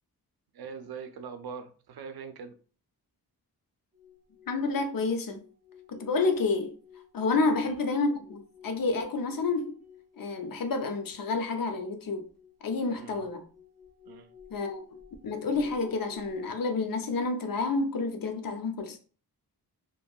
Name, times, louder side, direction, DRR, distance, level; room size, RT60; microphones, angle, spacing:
voice 1, 0.5-2.6 7.4-7.6 12.9-13.3 14.1-14.3, right 6 dB, 70° right, 0.5 m, -42 dB
sound 1, 3.9-16.5, left 8 dB, 20° right, 1.0 m, -54 dB
voice 2, 4.5-5.4 5.9-6.7 7.1-9.8 10.2-12.2 12.6-13.5 14.5-14.9 15.2-19.0, left 3 dB, 60° left, 0.6 m, -29 dB
2.8 x 2.6 x 2.2 m
wide cardioid pair, 85°, 39 cm